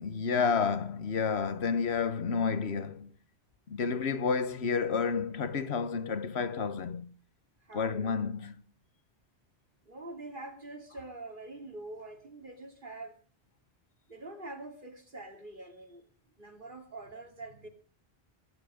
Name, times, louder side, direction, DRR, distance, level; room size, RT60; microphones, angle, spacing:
voice 1, 0.0-3.1 3.7-7.1 7.7-8.6, left 5 dB, 85° left, 1.4 m, -30 dB
voice 2, 7.6-8.1 9.8-13.2 14.1-16.1 16.4-17.7, right 2 dB, 50° right, 3.0 m, -45 dB
21.0 x 10.5 x 5.0 m
omnidirectional pair, 1.1 m